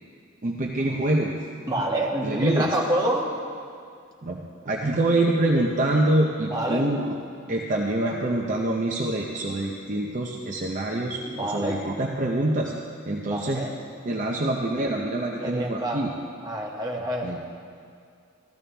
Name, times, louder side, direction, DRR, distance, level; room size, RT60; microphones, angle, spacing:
voice 1, 0.4-1.4 2.2-2.7 4.2-7.2 7.5-12.7 13.1-13.6 14.1-16.1 17.2-17.4, right 1 dB, 40° right, -1 dB, 0.7 m, -25 dB
voice 2, 1.7-3.4 6.4-6.9 11.2-11.8 13.2-13.7 15.4-16.0 16.4-17.3, right 1 dB, 20° right, -2 dB, 1.4 m, -27 dB
14.0 x 13.5 x 3.4 m, 2.3 s
head